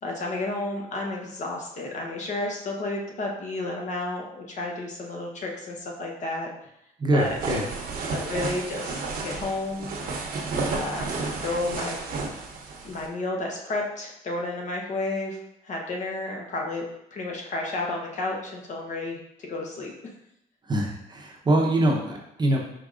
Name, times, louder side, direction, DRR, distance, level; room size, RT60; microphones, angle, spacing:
voice 1, 0.0-6.5 7.1-7.3 8.1-9.9 10.7-11.1 11.4-12.0 12.8-15.4 15.6-16.8 17.1-19.9, left 2 dB, 45° left, 0 dB, 1.0 m, -31 dB
voice 2, 7.0-7.6 20.6-22.6, right 1 dB, 25° right, 0 dB, 0.8 m, -24 dB
sound 1, 7.2-13.1, right 3 dB, 60° right, 0.9 m, -32 dB
4.8 x 3.9 x 2.5 m, 0.80 s
cardioid pair, 110°, 17 cm